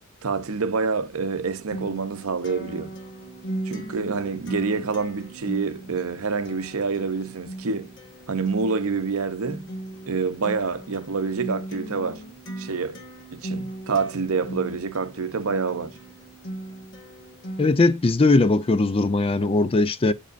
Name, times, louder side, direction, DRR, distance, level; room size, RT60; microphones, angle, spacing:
voice 1, 0.2-2.9 3.6-7.9 8.3-9.7 10.1-12.2 12.6-13.0 13.3-15.9, right 4 dB, 75° right, 0.7 m, -27 dB
Acoustic guitar, 1.7-17.7, right 1 dB, 60° left, 1.6 m, -38 dB
voice 2, 17.6-20.1, left 3 dB, 25° left, 0.4 m, -19 dB
8.1 x 5.3 x 2.5 m
head